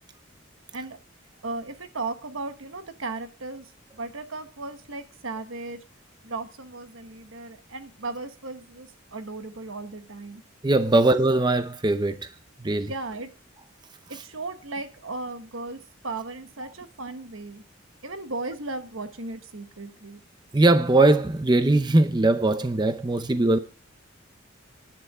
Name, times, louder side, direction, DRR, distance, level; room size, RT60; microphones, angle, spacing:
voice 1, 1.4-5.8 6.2-10.4 12.9-13.3 14.1-17.6 18.0-20.2, right 3 dB, 75° right, 1.3 m, -36 dB
voice 2, 10.6-12.3 12.6-12.9 20.5-23.6, right 2 dB, 20° right, 0.6 m, -20 dB
10.5 x 10.0 x 4.9 m
head